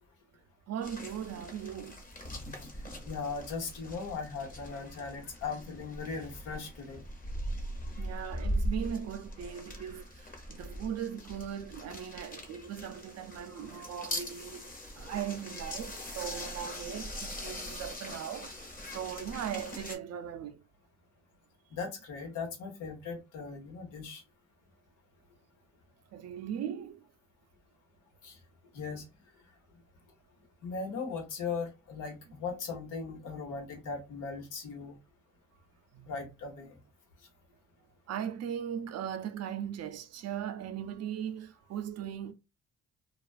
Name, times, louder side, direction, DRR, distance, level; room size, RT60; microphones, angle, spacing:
voice 1, 0.7-2.0 8.0-14.6 14.9-18.6 18.9-20.6 26.1-27.0 35.9-36.1 38.1-42.3, right 9 dB, 55° right, 0.5 m, -38 dB
sound 1, 0.8-20.0, equal, 30° left, 0.8 m, -41 dB
voice 2, 2.6-7.0 21.7-24.2 28.2-28.4 28.7-29.5 30.6-35.0 36.1-36.8 37.2-37.3, left 5 dB, 85° left, 1.0 m, -39 dB
2.4 x 2.3 x 2.4 m
cardioid pair, 90°, 30 cm